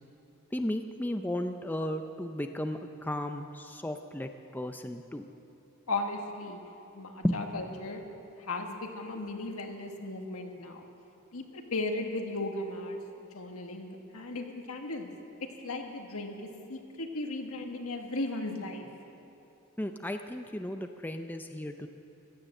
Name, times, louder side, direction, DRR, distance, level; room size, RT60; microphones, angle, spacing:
voice 1, 0.5-5.2 7.2-7.3 19.8-21.9, left 1 dB, 10° left, 6 dB, 0.5 m, -34 dB
voice 2, 5.9-6.6 6.9-8.0 8.4-10.9 11.3-15.1 15.6-18.9, left 2 dB, 80° left, 3 dB, 1.6 m, -36 dB
16.0 x 11.5 x 7.7 m, 2.7 s
head